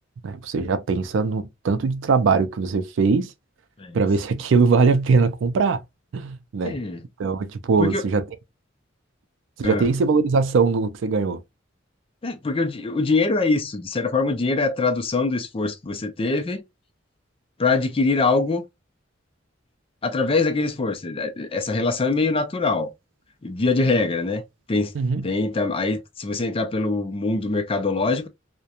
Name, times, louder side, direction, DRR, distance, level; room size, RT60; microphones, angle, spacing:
voice 1, 0.2-3.3 3.9-5.8 6.1-6.8 7.2-8.2 9.6-11.4 24.9-25.2, right 4 dB, 70° right, 0.4 m, -21 dB
voice 2, 6.6-7.0 7.8-8.0 9.6-9.9 12.2-16.6 17.6-18.6 20.0-22.9 23.4-24.4 24.7-24.9 25.2-28.3, left 3 dB, 30° left, 0.4 m, -23 dB
2.4 x 2.1 x 2.8 m
head